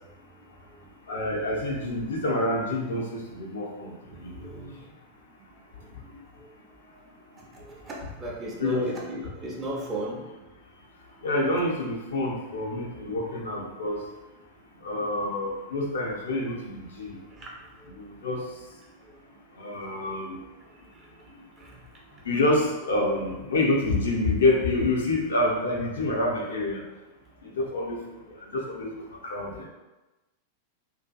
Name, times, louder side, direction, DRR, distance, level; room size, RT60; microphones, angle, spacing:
voice 1, 1.1-4.3 8.6-8.9 11.2-14.0 14.8-17.2 17.9-18.4 19.6-20.4 22.2-26.8 27.4-28.0 28.5-28.9 29.2-29.7, left 2 dB, 65° left, -1 dB, 0.5 m, -27 dB
voice 2, 3.8-4.7 6.0-6.1 6.4-6.5 7.4-10.3 14.1-14.2 17.4-17.6 17.9-18.0 20.9-21.8 22.1-22.2 28.5-28.6 29.4-29.7, right 1 dB, 25° right, -3 dB, 0.6 m, -38 dB
2.6 x 2.4 x 2.3 m, 1.1 s
figure-of-eight pair, 90°, 0 cm